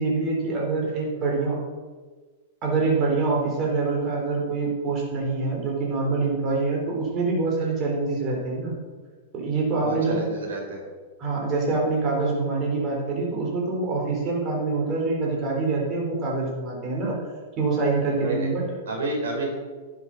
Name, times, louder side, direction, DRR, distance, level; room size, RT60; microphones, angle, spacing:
voice 1, 0.0-1.6 2.6-8.8 9.3-10.2 11.2-17.2 17.6-18.8, right 3 dB, 35° right, -2 dB, 4.0 m, -25 dB
voice 2, 9.8-10.8 18.2-18.5 18.9-19.5, right 2 dB, 80° right, 0 dB, 4.1 m, -29 dB
11.0 x 7.4 x 6.5 m, 1.4 s
hypercardioid pair, 125°, 0 cm